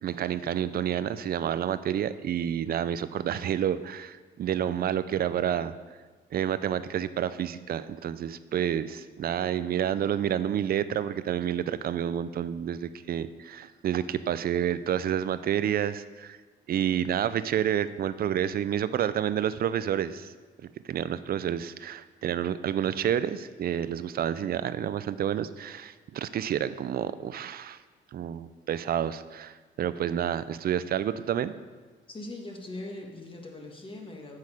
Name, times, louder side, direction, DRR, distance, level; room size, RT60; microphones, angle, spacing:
voice 1, 0.0-5.7 6.3-16.4 16.7-20.3 20.6-27.8 28.1-31.5, right 9 dB, 50° right, 14 dB, 0.4 m, -29 dB
voice 2, 32.1-34.4, left 2 dB, 25° left, 1 dB, 1.6 m, -41 dB
8.3 x 6.5 x 4.9 m, 1.4 s
cardioid pair, 90°, 20 cm